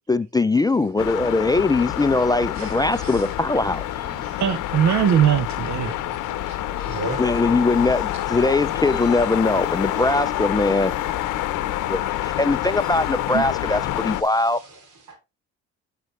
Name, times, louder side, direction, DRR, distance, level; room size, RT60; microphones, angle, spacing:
voice 1, 0.1-3.8 7.2-10.9 11.9-14.6, left 3 dB, 15° left, 0.3 m, -21 dB
sound 1, 1.0-14.2, left 14 dB, 90° left, 0.8 m, -27 dB
sound 2, 2.1-14.2, equal, 15° right, 5.6 m, -48 dB
voice 2, 4.2-5.9 13.3-13.4, right 9 dB, 65° right, 0.9 m, -21 dB
voice 3, 6.1-7.3 14.1-15.2, right 1 dB, 85° right, 3.1 m, -36 dB
10.5 x 5.2 x 3.2 m
cardioid pair, 90°, 30 cm